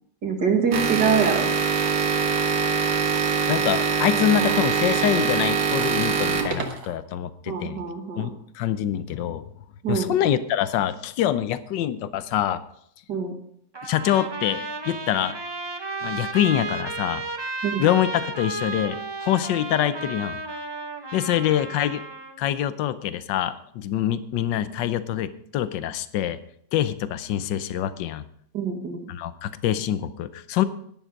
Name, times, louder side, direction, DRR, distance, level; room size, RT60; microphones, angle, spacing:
voice 1, 0.2-1.5 7.5-8.3 9.8-10.1 13.1-13.3 17.6-17.8 28.5-29.0, right 6 dB, 70° right, 2 dB, 2.5 m, -24 dB
sound 1, 0.7-6.9, right 6 dB, 85° right, 2.1 m, -23 dB
voice 2, 3.5-7.8 8.2-9.4 9.9-12.6 13.8-15.3 16.0-17.2 17.8-20.4 21.1-22.0 22.4-26.4 26.7-28.2 29.1-30.6, left 11 dB, 85° left, 14 dB, 1.4 m, -25 dB
Trumpet, 13.7-22.4, right 3 dB, 30° right, 0.4 m, -33 dB
11.0 x 10.0 x 5.2 m, 0.67 s
omnidirectional pair, 1.9 m